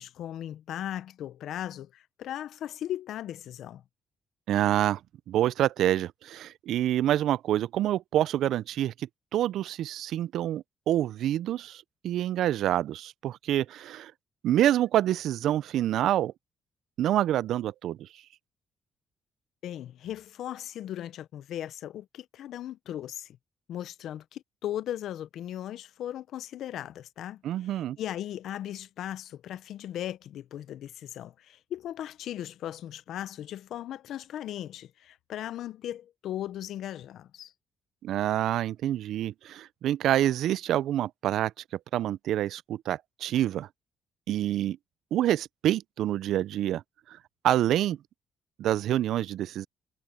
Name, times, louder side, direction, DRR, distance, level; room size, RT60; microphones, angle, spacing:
voice 1, 0.0-3.8 19.6-23.4 23.7-37.5, left 11 dB, 75° left, 0.6 m, -37 dB
voice 2, 4.5-5.0 5.3-8.9 9.3-14.1 14.4-16.3 17.0-18.1 27.4-28.0 38.0-41.5 41.9-43.7 44.3-44.8 45.1-46.8 47.4-48.0 48.6-49.7, right 12 dB, 80° right, 0.3 m, -27 dB
cardioid pair, 90°, 0 cm